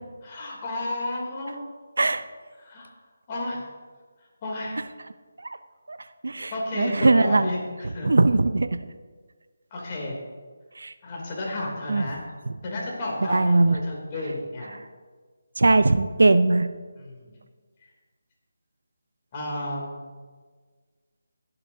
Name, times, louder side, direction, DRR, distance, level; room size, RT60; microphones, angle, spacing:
voice 1, 0.2-1.7 2.6-2.9 3.3-3.6 4.4-4.8 6.5-8.1 9.7-10.1 11.0-12.2 12.6-14.8 17.0-17.4 19.3-20.0, left 1 dB, 30° left, -3 dB, 3.0 m, -32 dB
voice 2, 6.2-7.5 8.0-8.7 10.8-10.9 11.9-12.0 13.3-13.8 15.6-16.7, right 2 dB, 75° right, 12 dB, 0.5 m, -20 dB
20.0 x 7.9 x 2.8 m, 1.5 s
figure-of-eight pair, 160°, 0 cm